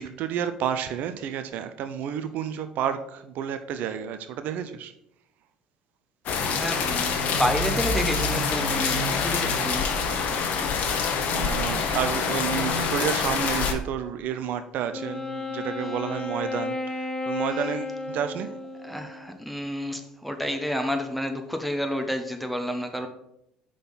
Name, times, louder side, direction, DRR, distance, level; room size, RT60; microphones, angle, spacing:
voice 1, 0.0-4.9 11.0-11.1 11.3-18.5, right 9 dB, 60° right, 9 dB, 0.5 m, -30 dB
sound 1, 6.3-13.7, left 5 dB, 55° left, 1.0 m, -26 dB
voice 2, 6.4-9.9 18.8-23.1, equal, ahead, 6 dB, 1.0 m, -30 dB
Wind instrument woodwind instrument, 14.9-19.4, left 3 dB, 15° left, 0.6 m, -33 dB
5.8 x 3.7 x 5.6 m, 0.78 s
hypercardioid pair, 70°, 3 cm